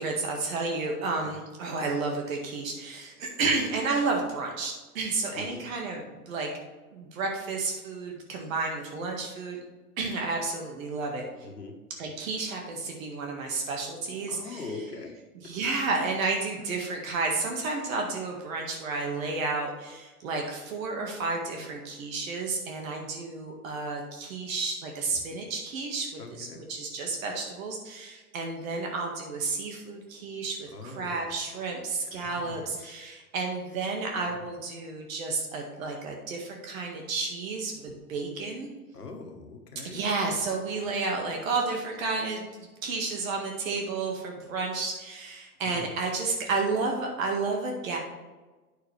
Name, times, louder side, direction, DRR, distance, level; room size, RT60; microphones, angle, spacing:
voice 1, 0.0-6.5 6.9-9.6 10.0-11.3 12.0-14.7 15.4-26.1 26.4-38.7 39.8-42.4 42.8-48.0, right 3 dB, 60° right, 1 dB, 1.9 m, -31 dB
voice 2, 14.3-15.1 26.2-26.6 30.7-31.2 32.0-33.0 38.9-40.0 45.6-45.9, left 3 dB, 90° left, 3 dB, 1.6 m, -42 dB
9.2 x 6.8 x 3.4 m, 1.2 s
hypercardioid pair, 110°, 46 cm